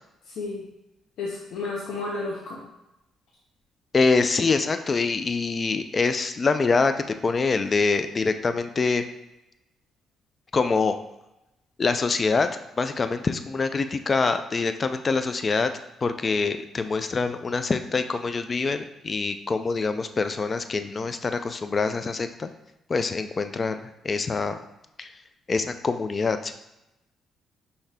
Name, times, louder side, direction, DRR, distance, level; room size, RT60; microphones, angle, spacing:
voice 1, 0.3-0.6 1.2-2.6, left 3 dB, 80° left, -4 dB, 0.8 m, -32 dB
voice 2, 3.9-9.0 10.5-11.0 11.8-12.5 12.8-15.7 16.0-22.5 22.9-23.8 24.0-24.6 25.0-25.1 25.5-26.5, left 4 dB, 35° left, 9 dB, 0.4 m, -25 dB
5.7 x 2.7 x 3.4 m, 0.91 s
cardioid pair, 90°, 0 cm